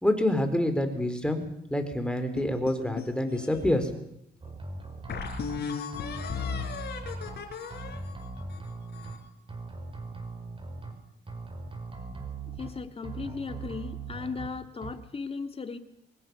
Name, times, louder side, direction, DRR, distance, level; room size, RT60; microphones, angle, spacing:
voice 1, 0.0-1.4 1.7-3.9, left 1 dB, 5° left, 6 dB, 4.2 m, -27 dB
sound 1, 2.4-3.9 4.5-4.6 5.1-9.3, left 6 dB, 55° left, 4.6 m, -37 dB
sound 2, 4.4-5.6 5.9-7.4 7.7-9.1 9.5-10.9 11.3-12.7 13.0-14.5 14.8-14.9, right 3 dB, 25° right, 5.6 m, -39 dB
voice 2, 12.6-15.8, left 4 dB, 30° left, 7 dB, 2.3 m, -37 dB
23.5 x 20.0 x 7.1 m, 0.78 s
cardioid pair, 90°, 20 cm